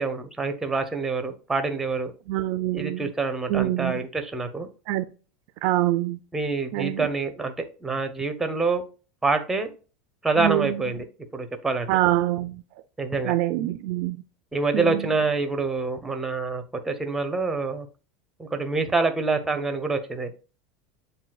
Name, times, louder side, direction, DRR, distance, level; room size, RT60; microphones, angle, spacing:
voice 1, 0.0-2.1 2.7-4.7 6.3-7.5 7.8-8.8 9.2-9.7 10.2-11.1 11.3-11.9 13.0-13.4 14.5-17.9 18.4-20.3, right 3 dB, 5° right, 0.6 m, -26 dB
voice 2, 2.3-3.1 3.5-4.0 4.9-5.0 5.6-6.2 6.7-7.1 10.4-10.8 11.9-12.6 13.2-14.2 14.7-15.1, right 15 dB, 60° right, 0.4 m, -25 dB
7.3 x 2.7 x 2.3 m
supercardioid pair, 135°, 4 cm